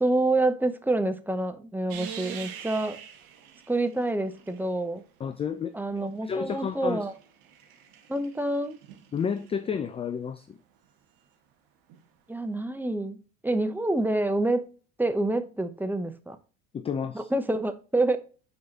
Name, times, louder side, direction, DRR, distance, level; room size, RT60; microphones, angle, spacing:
voice 1, 0.0-3.0 3.7-5.0 5.7-7.1 8.1-8.8 12.3-14.7 15.0-16.4 17.1-18.2, right 2 dB, 5° right, 0.8 m, -27 dB
sound 1, 1.9-5.0 6.1-9.5 11.9-12.0, right 8 dB, 55° right, 1.4 m, -45 dB
voice 2, 5.2-5.7 6.2-7.1 9.1-10.6 16.7-17.3, left 6 dB, 15° left, 0.4 m, -31 dB
8.0 x 4.7 x 2.8 m
hypercardioid pair, 75°, 42 cm